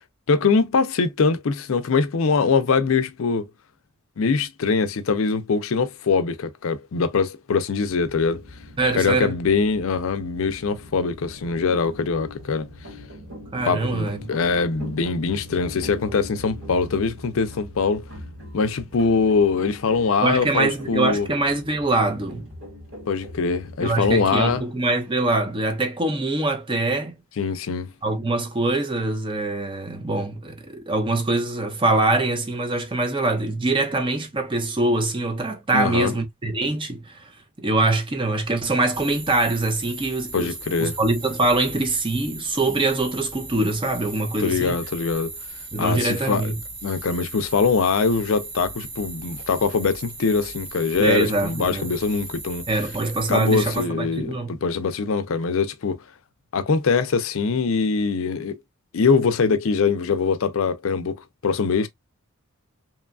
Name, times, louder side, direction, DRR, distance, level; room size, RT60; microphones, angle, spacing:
voice 1, 0.3-3.4 4.2-8.4 9.0-12.7 13.6-18.0 18.5-21.3 23.1-24.6 27.4-27.9 35.7-36.1 40.3-41.0 44.4-45.3 45.8-46.5 46.8-52.6 53.3-56.0 56.5-58.6 58.9-61.2 61.4-61.9, left 5 dB, 65° left, 0.4 m, -22 dB
sound 1, 7.9-24.6, left 1 dB, 60° right, 1.4 m, -41 dB
voice 2, 8.8-9.4 13.5-14.2 20.2-22.5 23.8-27.2 28.0-37.3 37.6-44.8 45.7-46.6 51.0-51.9 52.7-54.5, right 2 dB, 20° right, 0.5 m, -23 dB
sound 2, 38.9-53.9, right 3 dB, 80° right, 1.4 m, -37 dB
2.9 x 2.3 x 2.3 m
head